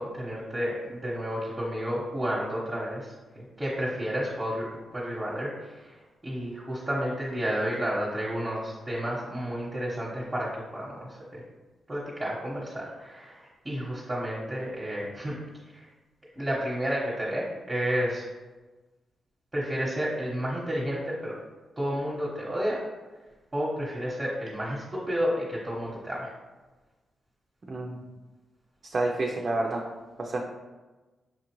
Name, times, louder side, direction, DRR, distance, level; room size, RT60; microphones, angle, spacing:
voice 1, 0.0-4.7 4.9-5.9 6.2-11.4 11.9-15.3 15.7-15.8 16.4-18.2 19.5-21.4 21.8-22.8 23.5-26.3, equal, 20° right, -6 dB, 1.1 m, -31 dB
voice 2, 27.7-28.0 28.8-29.8 30.2-30.4, right 2 dB, 45° right, 0 dB, 0.5 m, -29 dB
5.9 x 2.4 x 3.0 m, 1.2 s
cardioid pair, 70°, 0 cm